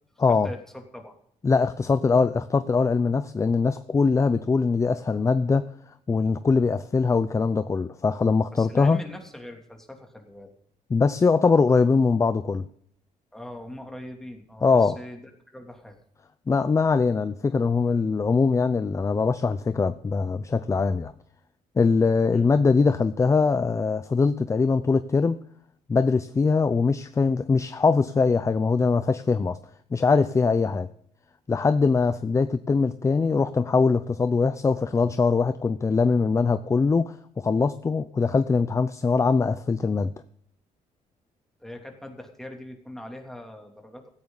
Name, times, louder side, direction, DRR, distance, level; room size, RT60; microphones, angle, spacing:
voice 1, 0.3-1.2 8.5-10.5 13.3-16.0 22.3-22.5 41.6-44.1, left 1 dB, 5° left, 3 dB, 2.8 m, -41 dB
voice 2, 1.4-5.7 6.1-9.0 10.9-12.6 14.6-15.0 16.5-21.1 21.8-25.4 25.9-29.6 29.9-30.9 31.5-40.1, left 4 dB, 20° left, 12 dB, 0.6 m, -22 dB
17.0 x 14.5 x 4.0 m, 0.64 s
cardioid pair, 125°, 14 cm